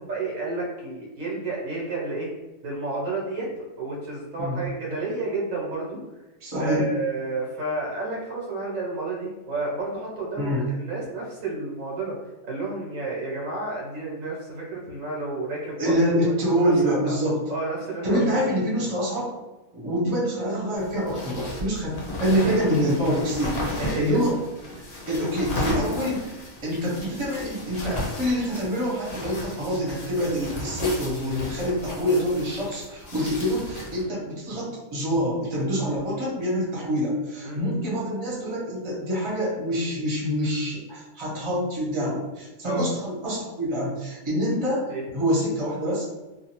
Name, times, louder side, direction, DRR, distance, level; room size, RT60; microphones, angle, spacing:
voice 1, 0.1-2.3 2.6-3.5 3.8-6.0 6.6-12.2 12.4-17.2 17.5-18.5 22.3-22.6 23.8-24.2 34.0-34.2 36.7-36.9 37.4-37.9 42.6-42.9 44.9-45.0, right 3 dB, 65° right, -3 dB, 1.2 m, -31 dB
voice 2, 6.4-6.9 10.4-10.7 15.8-17.4 18.0-19.3 19.7-24.3 25.1-46.0, equal, 25° right, -7 dB, 0.9 m, -26 dB
sound 1, 20.8-34.0, left 1 dB, 55° left, 0.8 m, -35 dB
2.5 x 2.3 x 2.9 m, 1.1 s
omnidirectional pair, 1.5 m